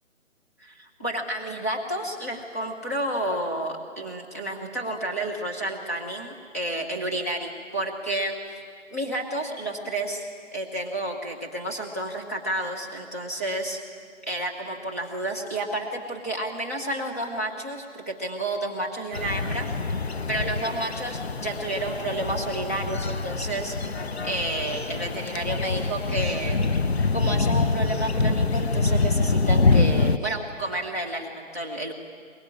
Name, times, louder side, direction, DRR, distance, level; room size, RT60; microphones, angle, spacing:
voice 1, 0.6-8.4 8.9-13.8 14.3-19.7 20.3-23.8 24.2-26.7 27.1-31.9, right 1 dB, 10° left, -2 dB, 1.0 m, -30 dB
sound 1, 19.1-30.2, left 3 dB, 55° left, 0.9 m, -25 dB
22.5 x 22.0 x 9.7 m, 2.1 s
hypercardioid pair, 175°, 39 cm